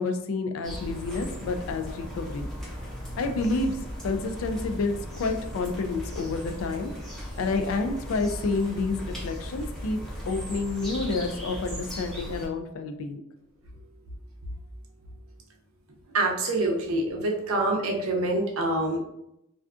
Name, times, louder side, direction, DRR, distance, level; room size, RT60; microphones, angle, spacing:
voice 1, 0.0-2.5 3.2-3.8 4.0-6.9 7.4-10.0 10.3-13.2, left 3 dB, 70° left, 7 dB, 0.3 m, -29 dB
sound 1, 0.6-12.5, equal, ahead, 0.6 m, -37 dB
voice 2, 16.1-19.0, right 2 dB, 85° right, 0 dB, 0.6 m, -26 dB
2.4 x 2.3 x 2.4 m, 0.80 s
head